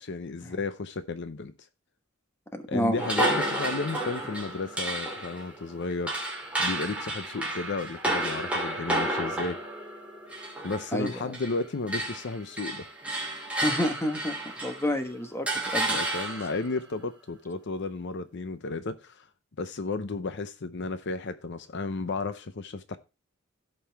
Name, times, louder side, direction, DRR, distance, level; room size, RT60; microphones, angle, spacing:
voice 1, 0.0-1.5 2.7-9.6 10.6-12.9 15.9-19.3 19.6-23.0, left 3 dB, 60° left, 0.7 m, -33 dB
voice 2, 2.5-3.0 10.9-11.1 13.6-16.0, equal, 10° left, 1.2 m, -29 dB
sound 1, 3.0-11.6 11.9-14.9 15.5-16.7, right 1 dB, 5° right, 2.4 m, -31 dB
16.0 x 5.5 x 3.4 m
head